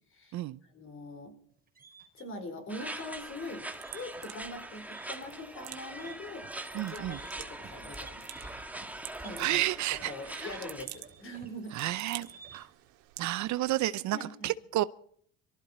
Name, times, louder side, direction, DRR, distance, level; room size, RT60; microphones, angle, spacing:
voice 1, 0.7-1.3 2.1-8.7 9.2-11.8 14.1-14.5, left 1 dB, 35° left, 4.3 m, -43 dB
sound 1, 1.5-12.8, right 5 dB, 25° right, 4.4 m, -54 dB
sound 2, 2.7-10.9, right 1 dB, 5° right, 1.4 m, -42 dB
sound 3, 3.1-13.8, right 17 dB, 75° right, 1.9 m, -51 dB
voice 2, 6.7-7.2 9.4-10.5 11.7-12.7 13.2-14.2 14.4-14.8, right 15 dB, 55° right, 0.7 m, -31 dB
23.5 x 14.0 x 4.4 m
cardioid pair, 115°, 35 cm